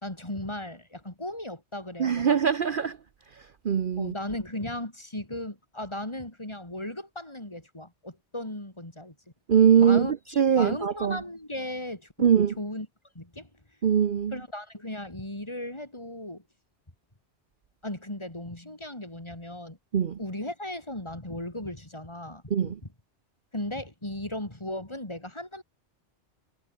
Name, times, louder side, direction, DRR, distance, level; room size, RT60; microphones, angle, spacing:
voice 1, 0.0-2.4 4.0-9.1 9.8-12.3 12.6-12.9 13.1-13.5 14.3-16.4 17.8-19.8 20.2-22.7 23.5-25.6, left 1 dB, 25° left, 3.3 m, -36 dB
voice 2, 2.0-3.0 3.6-4.1 9.5-10.1 10.4-11.2 12.2-12.5 13.8-14.4 19.9-20.2 22.5-22.8, right 8 dB, 50° right, 0.9 m, -22 dB
omnidirectional pair, 1.2 m